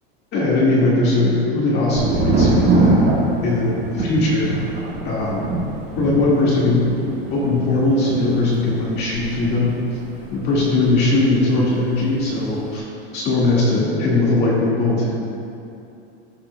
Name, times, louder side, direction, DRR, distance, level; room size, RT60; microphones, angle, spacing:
voice 1, 0.3-3.1 3.4-4.5 5.0-5.4 6.0-7.0 7.3-9.8 10.3-12.8 13.1-15.1, left 2 dB, 30° left, -6 dB, 1.8 m, -19 dB
Thunder, 2.0-11.6 11.9-12.6, right 2 dB, 25° right, 1.4 m, -23 dB
14.5 x 7.3 x 2.2 m, 2.7 s
supercardioid pair, 160°, 32 cm